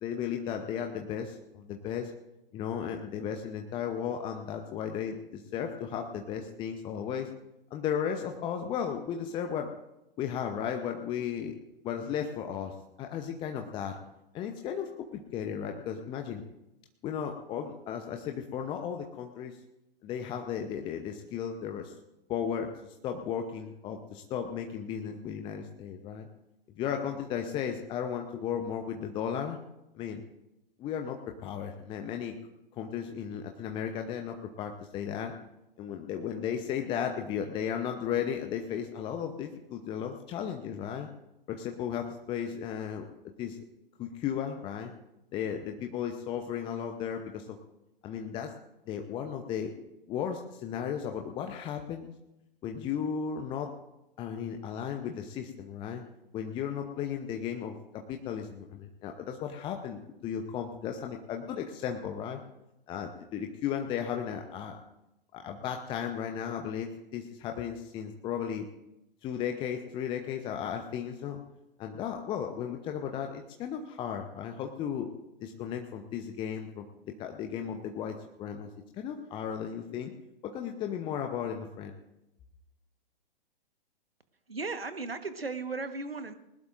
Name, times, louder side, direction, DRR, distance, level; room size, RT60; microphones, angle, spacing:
voice 1, 0.0-2.1 2.5-7.3 7.7-9.7 10.2-11.6 11.8-14.0 14.3-16.4 17.0-19.6 20.0-21.9 22.3-26.3 26.7-29.6 29.9-30.2 30.8-32.4 32.8-35.3 35.8-41.1 41.5-43.1 43.4-43.6 44.0-44.9 45.3-47.6 48.0-48.5 48.9-49.7 50.1-52.1 52.6-53.7 54.2-56.0 56.3-62.4 62.9-64.8 65.3-68.7 69.2-71.4 71.8-75.1 75.4-76.8 77.2-80.1 80.4-81.9, left 8 dB, 15° left, 4 dB, 0.8 m, -35 dB
voice 2, 84.5-86.3, right 3 dB, 80° right, 10 dB, 1.4 m, -36 dB
20.5 x 19.0 x 2.6 m, 0.91 s
figure-of-eight pair, 115°, 29 cm